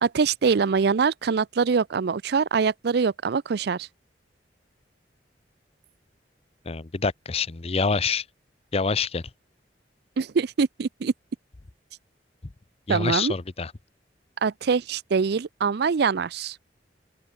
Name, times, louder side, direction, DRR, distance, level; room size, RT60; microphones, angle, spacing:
voice 1, 0.0-3.9 10.2-11.1 12.9-13.3 14.4-16.6, right 5 dB, 65° right, 0.5 m, -24 dB
voice 2, 6.7-8.2 8.7-9.2 12.9-13.7, left 4 dB, 35° left, 0.7 m, -26 dB
open air
head